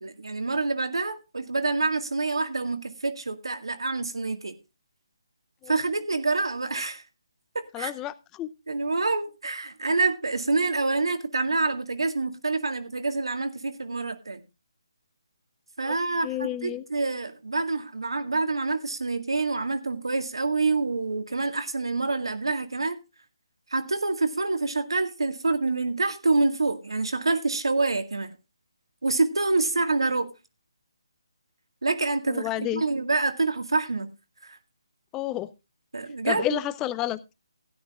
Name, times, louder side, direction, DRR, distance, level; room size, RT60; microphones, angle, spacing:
voice 1, 0.0-4.5 5.7-7.0 7.5-7.9 8.7-14.4 15.8-23.0 23.7-28.3 29.0-30.3 31.8-34.1 34.4-34.6 35.9-36.6, right 3 dB, 70° right, 1.9 m, -27 dB
voice 2, 7.7-8.5 15.8-15.9 16.2-16.8 32.3-32.8 35.1-35.5 36.2-37.4, left 14 dB, 15° left, 0.5 m, -30 dB
16.5 x 12.0 x 2.4 m
figure-of-eight pair, 145°, 3 cm